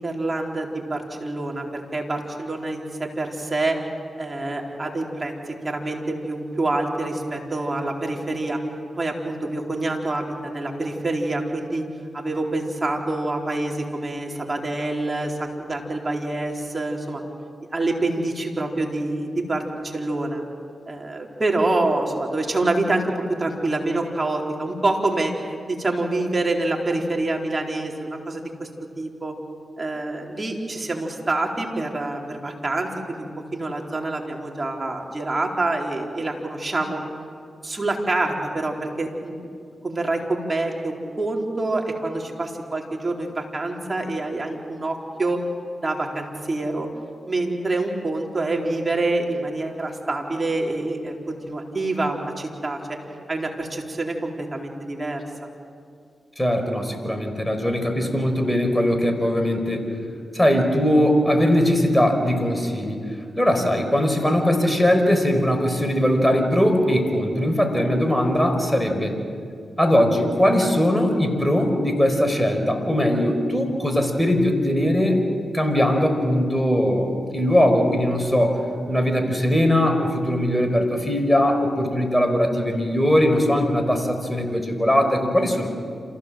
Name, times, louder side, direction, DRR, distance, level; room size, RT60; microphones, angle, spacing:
voice 1, 0.0-3.8 4.2-8.6 9.0-11.8 12.1-17.2 17.7-20.4 20.9-28.7 29.0-29.3 29.8-37.0 37.6-39.5 39.8-45.4 45.8-46.9 47.3-53.0 53.3-55.3, right 2 dB, 35° right, 0 dB, 4.1 m, -26 dB
voice 2, 56.4-59.8 60.3-63.0 63.4-69.2 69.8-75.3 75.5-78.6 78.9-85.7, equal, 10° left, 5 dB, 5.0 m, -20 dB
27.5 x 16.0 x 7.7 m, 2.3 s
supercardioid pair, 40°, 0 cm